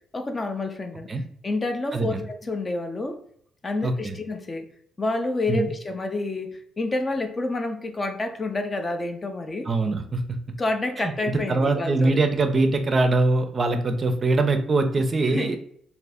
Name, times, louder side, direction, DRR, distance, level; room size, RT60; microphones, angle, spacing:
voice 1, 0.1-1.1 1.4-3.2 3.6-4.7 5.0-9.7 10.6-12.2 15.3-15.6, left 2 dB, 30° left, 6 dB, 0.4 m, -28 dB
voice 2, 1.9-2.2 3.8-4.2 5.5-5.7 9.7-10.2 11.0-15.6, right 2 dB, 35° right, 7 dB, 0.4 m, -23 dB
2.5 x 2.4 x 3.4 m, 0.65 s
cardioid pair, 90°, 0 cm